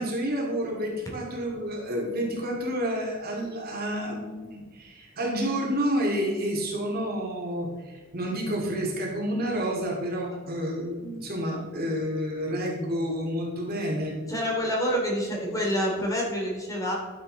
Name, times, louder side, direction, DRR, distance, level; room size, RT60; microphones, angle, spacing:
voice 1, 0.0-14.2, equal, 50° right, -1 dB, 2.4 m, -29 dB
voice 2, 14.3-16.9, equal, 15° left, -3 dB, 2.8 m, -27 dB
12.0 x 8.0 x 4.0 m, 1.4 s
head